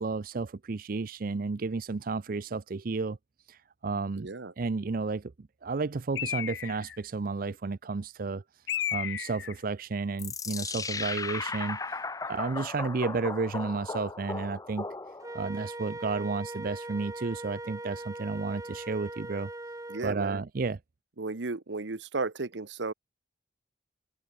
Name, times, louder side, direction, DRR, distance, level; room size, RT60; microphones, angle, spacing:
voice 1, 0.0-3.2 3.5-4.3 4.6-8.4 8.9-14.9 15.3-19.5 20.0-20.8, right 4 dB, 50° right, 0.5 m, -32 dB
voice 2, 4.2-4.5 19.9-20.4 21.2-22.9, right 3 dB, 75° right, 1.0 m, -34 dB
Bird, 6.2-7.0 8.7-9.6, left 11 dB, 75° left, 0.5 m, -33 dB
sound 1, 10.2-15.5, left 4 dB, 20° left, 0.9 m, -36 dB
Wind instrument woodwind instrument, 15.2-20.1, right 2 dB, 20° right, 1.2 m, -40 dB
open air
head